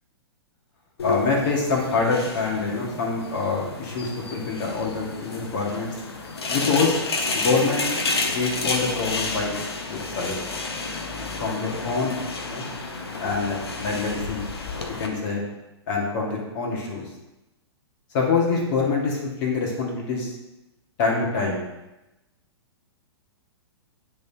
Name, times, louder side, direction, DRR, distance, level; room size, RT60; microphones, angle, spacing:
sound 1, 1.0-15.1, left 3 dB, 70° left, 0.9 m, -31 dB
voice 1, 1.0-5.9 6.5-7.0 7.3-7.9 8.3-9.6 9.9-10.4 11.4-12.2 12.5-12.7 13.2-14.4 15.0-15.4 15.9-17.0 18.1-20.3 21.0-21.6, left 4 dB, 45° left, -2 dB, 2.0 m, -25 dB
10.0 x 3.7 x 2.9 m, 0.98 s
figure-of-eight pair, 115°, 14 cm